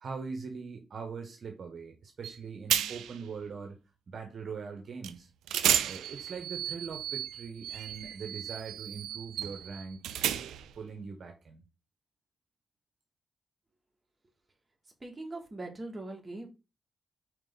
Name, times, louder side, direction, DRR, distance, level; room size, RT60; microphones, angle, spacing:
voice 1, 0.0-3.7 4.1-5.3 5.8-10.4 10.7-11.6, right 5 dB, 60° right, 4 dB, 1.1 m, -41 dB
sound 1, 2.2-2.4 2.7-3.2 5.0-5.2 5.5-10.8, right 10 dB, 85° right, 0.5 m, -33 dB
voice 2, 15.0-16.5, right 2 dB, 25° right, 1 dB, 2.4 m, -41 dB
4.9 x 4.7 x 4.0 m, 0.29 s
supercardioid pair, 50°, 0 cm